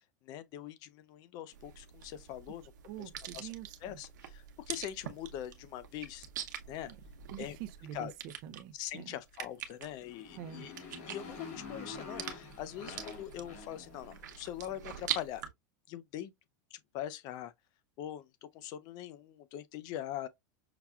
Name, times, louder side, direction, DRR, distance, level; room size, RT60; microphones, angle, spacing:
voice 1, 0.2-2.7 3.0-3.5 3.8-6.3 6.7-6.9 7.4-7.6 7.9-8.1 8.7-10.7 11.1-15.4 15.9-16.3 16.7-17.5 18.0-20.3, left 12 dB, 45° left, 0.6 m, -42 dB
sound 1, 1.5-15.5, right 10 dB, 90° right, 0.8 m, -44 dB
voice 2, 2.8-4.0 6.8-7.0 7.3-9.1 10.3-10.7, right 11 dB, 50° right, 0.6 m, -46 dB
Motorcycle, 9.9-14.5, left 4 dB, 65° left, 2.4 m, -47 dB
5.9 x 2.3 x 2.3 m
supercardioid pair, 135°, 10 cm